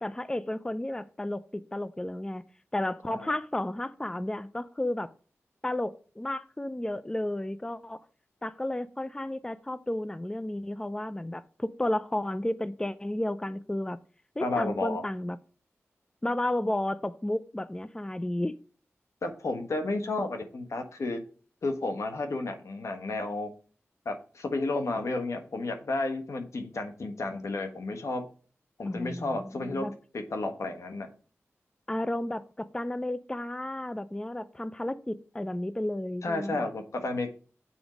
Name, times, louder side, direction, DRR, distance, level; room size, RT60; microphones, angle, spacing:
voice 1, 0.0-2.4 2.7-5.1 5.6-8.1 8.4-14.0 14.4-15.4 16.2-18.6 28.9-29.9 31.9-36.7, left 1 dB, 15° left, 13 dB, 0.5 m, -32 dB
voice 2, 14.4-15.0 19.2-21.2 21.6-23.5 24.0-28.3 28.8-29.9 30.1-31.1 36.2-37.3, left 2 dB, 75° left, 6 dB, 1.4 m, -32 dB
7.1 x 4.5 x 5.1 m, 0.40 s
cardioid pair, 55°, 5 cm